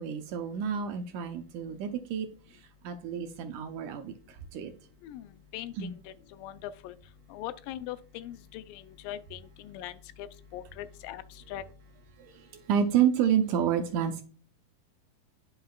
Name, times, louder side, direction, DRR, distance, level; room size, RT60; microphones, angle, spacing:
voice 1, 0.0-4.7 5.8-5.9 12.2-14.2, right 8 dB, 85° right, 6 dB, 1.8 m, -29 dB
voice 2, 5.5-6.1 6.4-6.9 7.3-9.9 10.2-10.3 10.5-11.2 11.5-11.6, left 12 dB, 80° left, 11 dB, 2.2 m, -40 dB
9.5 x 5.6 x 2.3 m, 0.41 s
omnidirectional pair, 4.3 m